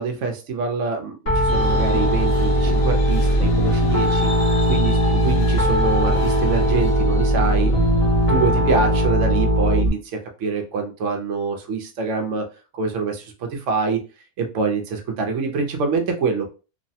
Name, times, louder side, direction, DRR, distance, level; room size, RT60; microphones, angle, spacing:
voice 1, 0.0-4.3 4.7-7.7 8.2-12.4 12.7-14.0 14.4-16.5, right 4 dB, 65° right, 3 dB, 0.9 m, -25 dB
Piano, 1.3-9.9, equal, 40° left, 0.6 m, -19 dB
sound 1, 1.5-9.1, left 4 dB, 85° left, 1.2 m, -35 dB
3.1 x 2.1 x 2.7 m, 0.33 s
omnidirectional pair, 1.5 m